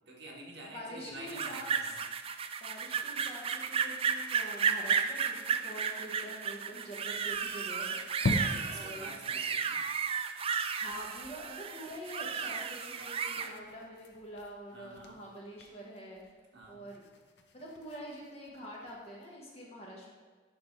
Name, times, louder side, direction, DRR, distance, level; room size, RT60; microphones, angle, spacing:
voice 1, 0.1-2.0 8.2-9.9 13.0-13.6 14.7-15.2 16.5-16.8, right 2 dB, 65° right, -2 dB, 1.5 m, -48 dB
voice 2, 0.6-1.7 2.6-8.0 8.7-9.1 10.7-16.2 16.7-17.0 17.5-20.1, equal, 35° left, -3 dB, 1.6 m, -46 dB
sound 1, 1.3-13.5, right 6 dB, 30° right, 0.3 m, -33 dB
sound 2, 7.1-9.0 9.4-9.5 9.8-9.9 10.2-10.4 10.7-19.3, left 2 dB, 65° left, 0.7 m, -42 dB
10.5 x 4.2 x 3.4 m, 1.4 s
head